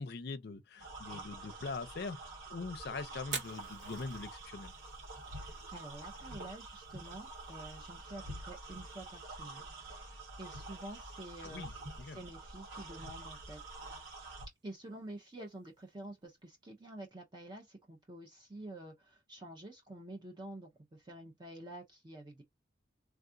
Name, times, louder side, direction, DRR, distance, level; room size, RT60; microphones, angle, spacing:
voice 1, 0.0-4.7 11.4-11.7 12.0-12.2, left 4 dB, 55° left, 0.5 m, -42 dB
sound 1, 0.8-14.5, right 2 dB, 85° right, 1.1 m, -47 dB
Fire, 3.2-17.1, right 6 dB, 60° right, 0.8 m, -53 dB
voice 2, 5.2-11.8 12.1-13.6 14.6-22.4, right 1 dB, 20° right, 0.5 m, -49 dB
3.4 x 2.3 x 2.5 m
head